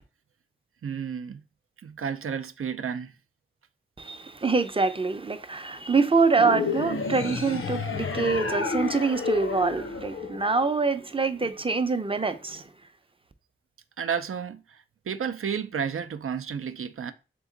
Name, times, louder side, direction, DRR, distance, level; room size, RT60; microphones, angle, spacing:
voice 1, 0.8-1.4 1.8-3.1 7.3-7.4 11.4-11.5 14.0-17.1, right 7 dB, 85° right, 0.4 m, -32 dB
voice 2, 4.0-12.6, right 4 dB, 25° right, 0.5 m, -25 dB
sound 1, 6.3-10.8, left 4 dB, 75° left, 0.5 m, -31 dB
3.6 x 2.9 x 3.8 m
wide cardioid pair, 70°, 21 cm